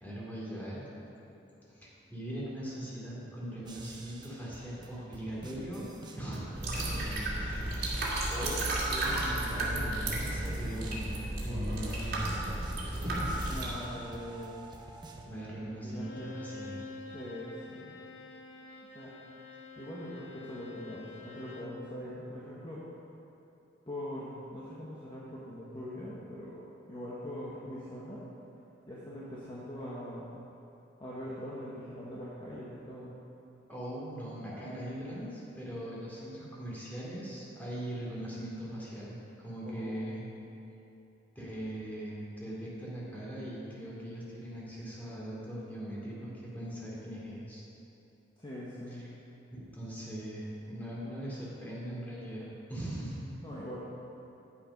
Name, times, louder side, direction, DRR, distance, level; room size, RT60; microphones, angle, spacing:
voice 1, 0.0-0.8 1.7-5.9 6.2-7.1 7.3-8.6 8.9-12.6 15.2-16.9 33.7-40.3 41.3-47.6 49.0-49.1 49.5-53.2, right 1 dB, 10° left, -6 dB, 2.5 m, -40 dB
sound 1, 3.7-6.7 6.9-9.1 9.3-15.3, right 2 dB, 25° right, 0.8 m, -49 dB
sound 2, 6.5-13.7, right 1 dB, 55° right, 2.1 m, -33 dB
voice 2, 13.5-14.6 15.6-16.3 17.1-17.9 18.9-19.1 19.8-22.8 23.9-28.3 28.9-30.3 31.0-33.1 39.6-40.0 48.4-49.0 53.4-53.8, equal, 25° left, -7 dB, 1.2 m, -42 dB
Bowed string instrument, 15.9-21.8, left 3 dB, 70° left, 0.8 m, -47 dB
10.0 x 7.5 x 5.3 m, 2.9 s
head